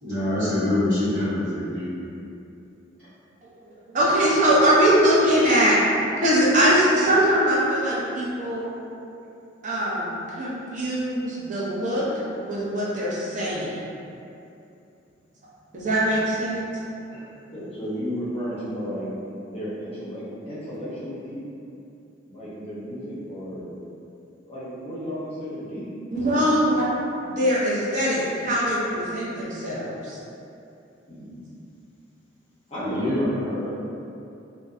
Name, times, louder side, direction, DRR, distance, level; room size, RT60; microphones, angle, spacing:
voice 1, 0.0-1.9 17.1-17.2 32.8-33.4, left 1 dB, 55° right, -17 dB, 1.1 m, -25 dB
voice 2, 3.9-5.8 6.2-8.7 9.6-12.0 12.4-13.8 15.7-16.6 26.1-26.9 27.3-30.2, right 1 dB, 40° right, -7 dB, 0.5 m, -22 dB
voice 3, 17.5-19.1 19.5-21.4 22.3-23.8 24.4-25.9 26.3-26.6 31.1-31.5 32.7-33.7, equal, 30° left, -9 dB, 0.5 m, -33 dB
2.6 x 2.1 x 2.3 m, 2.7 s
head